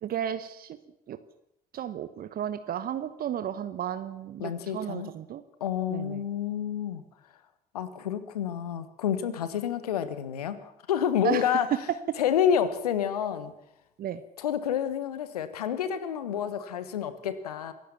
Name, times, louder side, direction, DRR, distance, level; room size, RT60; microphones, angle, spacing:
voice 1, 0.0-0.8 1.1-1.2 1.7-5.4 5.9-6.2 11.2-11.5 14.0-14.2, right 10 dB, 50° right, 12 dB, 1.1 m, -33 dB
voice 2, 4.4-5.1 5.6-7.0 7.7-11.7 12.2-13.5 14.4-17.7, left 9 dB, 80° left, 13 dB, 1.3 m, -29 dB
26.0 x 15.5 x 7.1 m, 0.82 s
figure-of-eight pair, 45°, 19 cm